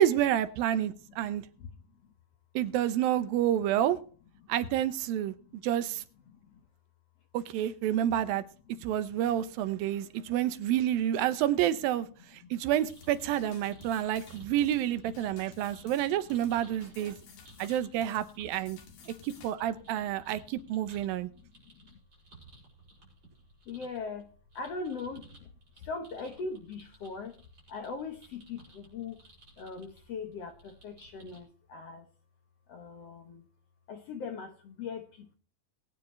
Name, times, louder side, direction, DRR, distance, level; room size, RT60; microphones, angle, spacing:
voice 1, 0.0-1.5 2.6-4.0 4.5-5.3 5.6-6.0 7.3-8.4 8.8-12.1 12.5-17.2 17.6-18.8 19.1-21.3, right 11 dB, 80° right, 13 dB, 2.6 m, -29 dB
voice 2, 0.9-1.3 1.6-2.1 5.4-5.7 6.3-6.6 8.7-8.9 9.4-9.5 9.9-10.4 12.4-12.6 13.7-14.4 15.3-16.1 17.0-17.7 18.7-19.3 20.3-20.4 21.0-22.0 23.7-27.3 27.7-29.2 29.6-32.1 32.7-33.5 33.9-35.3, left 4 dB, 60° left, 6 dB, 1.8 m, -42 dB
sound 1, 12.8-31.4, right 3 dB, 30° right, 6.6 m, -57 dB
sound 2, 12.9-19.5, left 6 dB, 90° left, 3.9 m, -55 dB
20.5 x 9.6 x 3.2 m, 0.40 s
omnidirectional pair, 4.1 m